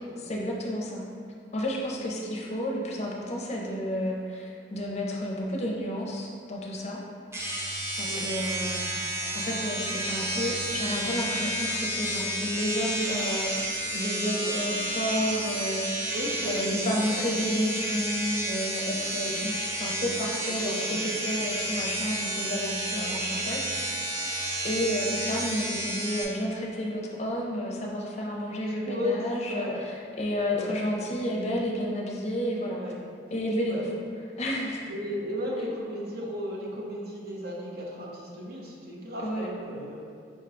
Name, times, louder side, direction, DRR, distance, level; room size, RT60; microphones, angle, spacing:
voice 1, 0.2-1.0 1.5-7.0 8.0-16.1 16.4-23.6 24.6-32.8 33.3-33.8 34.4-34.8 39.2-39.5, equal, 35° left, -2 dB, 0.5 m, -31 dB
sound 1, 7.3-26.2, right 1 dB, 15° right, 0.5 m, -31 dB
voice 2, 8.6-9.3 14.4-14.6 16.1-17.2 19.2-19.4 20.6-21.0 22.9-23.1 28.6-29.8 30.5-30.7 32.7-33.0 33.7-33.8 34.9-40.0, left 1 dB, 55° right, -4 dB, 0.7 m, -35 dB
5.1 x 2.2 x 3.7 m, 2.3 s
head